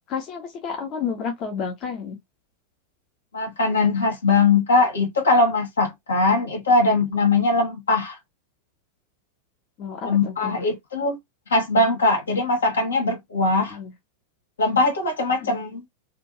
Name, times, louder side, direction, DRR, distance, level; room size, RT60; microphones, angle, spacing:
voice 1, 0.1-2.2 9.8-10.6 13.7-13.9 15.4-15.6, left 6 dB, 35° left, 0.9 m, -31 dB
voice 2, 3.3-8.2 10.0-11.2 11.5-13.8 14.6-15.9, left 3 dB, 70° left, 1.3 m, -21 dB
3.0 x 2.7 x 2.5 m
figure-of-eight pair, 90°, 0 cm